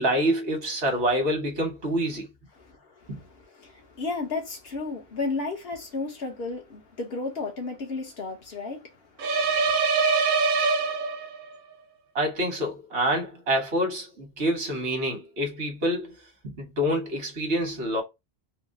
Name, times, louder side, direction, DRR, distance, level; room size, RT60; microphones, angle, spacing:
voice 1, 0.0-2.3 3.1-3.2 12.1-16.1 16.4-18.0, equal, 90° right, 1.6 m, -27 dB
voice 2, 2.6-9.1 9.4-9.7, left 3 dB, 70° left, 1.3 m, -34 dB
sound 1, 9.2-11.6, right 4 dB, 60° right, 0.7 m, -23 dB
4.1 x 2.0 x 2.6 m
omnidirectional pair, 1.1 m